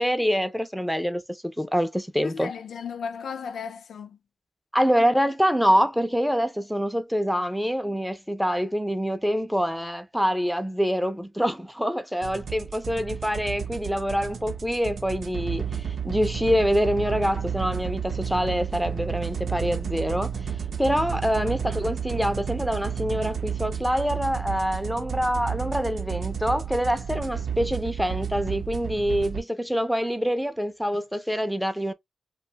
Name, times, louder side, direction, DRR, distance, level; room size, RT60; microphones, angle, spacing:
voice 1, 0.0-2.5 4.7-20.3 20.8-31.9, equal, ahead, 0.4 m, -25 dB
voice 2, 2.2-4.2 21.4-21.6 22.2-22.3, left 6 dB, 80° left, 0.3 m, -35 dB
sound 1, 12.2-29.4, right 7 dB, 65° right, 0.5 m, -32 dB
2.8 x 2.2 x 2.7 m
wide cardioid pair, 125°, 0 cm